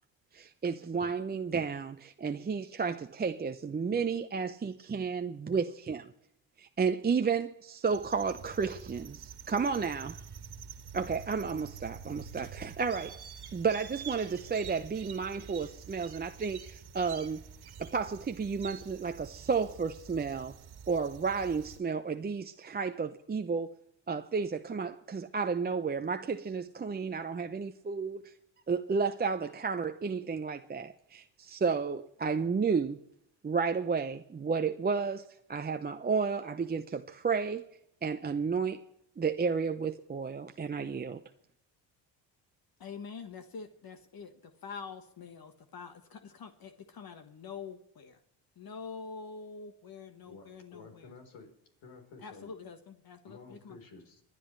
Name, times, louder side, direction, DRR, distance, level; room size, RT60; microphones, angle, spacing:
voice 1, 0.3-6.1 6.6-10.2 10.9-13.2 13.5-17.4 17.8-20.5 20.9-23.7 24.1-28.2 28.7-33.0 33.4-37.6 38.0-38.8 39.2-41.2, right 5 dB, 20° right, 0.6 m, -32 dB
sound 1, 7.9-21.8, right 7 dB, 55° right, 1.8 m, -47 dB
voice 2, 42.8-48.2 48.6-51.1 52.2-53.8, left 5 dB, 50° left, 1.4 m, -46 dB
voice 3, 50.3-51.5 51.8-52.5 53.2-54.2, left 3 dB, 70° left, 4.1 m, -51 dB
27.0 x 10.0 x 3.2 m
supercardioid pair, 75°, 47 cm